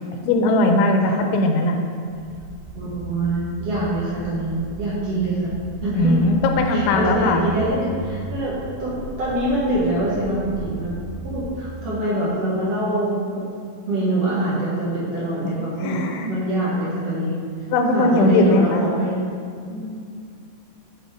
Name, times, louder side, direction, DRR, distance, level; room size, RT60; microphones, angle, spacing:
voice 1, 0.3-1.8 6.0-7.5 15.4-16.3 17.7-18.8, left 2 dB, 85° left, 4 dB, 3.0 m, -19 dB
sound 1, 2.1-11.5, right 1 dB, 85° right, 3.2 m, -36 dB
voice 2, 2.7-5.5 5.8-6.2 6.7-8.9 9.2-10.9 11.2-13.4 13.9-17.4 17.9-19.2 19.7-20.0, right 1 dB, 65° right, -9 dB, 1.6 m, -24 dB
7.9 x 5.1 x 5.0 m, 2.3 s
omnidirectional pair, 5.3 m